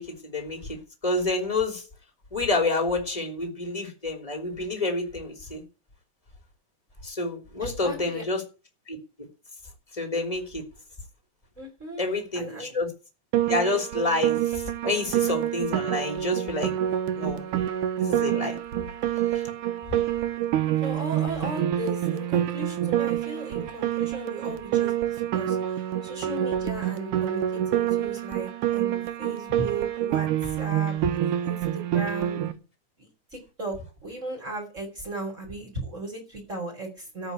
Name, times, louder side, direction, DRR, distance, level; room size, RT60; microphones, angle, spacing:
voice 1, 0.0-1.8 2.3-5.6 7.0-8.4 8.9-9.0 9.9-10.6 12.0-12.9 13.5-16.7 17.1-17.4 18.0-18.6 19.3-19.4, left 2 dB, 10° left, 4 dB, 3.0 m, -28 dB
voice 2, 7.6-8.2 11.6-12.0 12.3-12.7 20.8-25.6 26.0-31.0 31.4-32.5 33.0-33.8 34.0-37.3, right 2 dB, 25° right, 0 dB, 4.5 m, -36 dB
Piano, 13.3-32.5, right 12 dB, 85° right, 2.6 m, -27 dB
14.0 x 5.5 x 9.5 m, 0.33 s
omnidirectional pair, 3.5 m